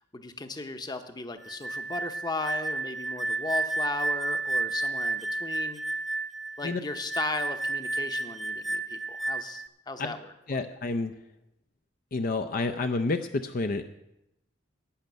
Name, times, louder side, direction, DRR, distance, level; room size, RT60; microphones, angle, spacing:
voice 1, 0.1-5.8 6.6-10.3, left 3 dB, 20° left, 8 dB, 0.9 m, -36 dB
sound 1, 1.4-9.7, right 2 dB, ahead, 0.5 m, -31 dB
voice 2, 10.5-11.1 12.1-13.8, left 3 dB, 50° left, 7 dB, 0.6 m, -29 dB
11.5 x 6.7 x 9.2 m, 0.86 s
head